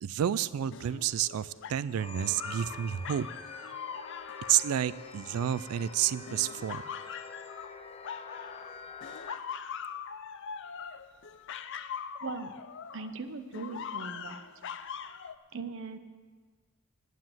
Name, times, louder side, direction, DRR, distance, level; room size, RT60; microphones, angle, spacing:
voice 1, 0.0-3.3 4.5-6.8, right 10 dB, 85° right, 18 dB, 0.3 m, -30 dB
sound 1, 0.7-5.7 6.3-8.7 9.0-13.2 13.5-15.4, left 7 dB, 60° left, 0.5 m, -42 dB
sound 2, 2.0-9.4, left 3 dB, 30° left, 0.8 m, -46 dB
voice 2, 12.2-12.5 12.9-14.4 15.5-16.0, right 4 dB, 60° right, 9 dB, 0.8 m, -39 dB
9.7 x 9.3 x 7.7 m, 1.5 s
head